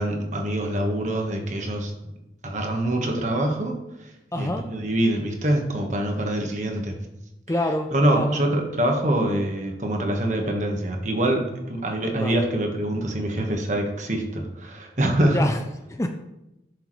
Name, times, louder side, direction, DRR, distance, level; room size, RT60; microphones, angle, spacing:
voice 1, 0.0-1.9 2.4-6.9 7.9-15.5, right 1 dB, 40° right, 2 dB, 1.4 m, -25 dB
voice 2, 4.3-4.6 7.5-8.4 12.1-12.4 15.3-15.6 15.9-16.1, left 1 dB, 15° left, 5 dB, 0.5 m, -27 dB
12.0 x 6.7 x 3.2 m, 0.93 s
head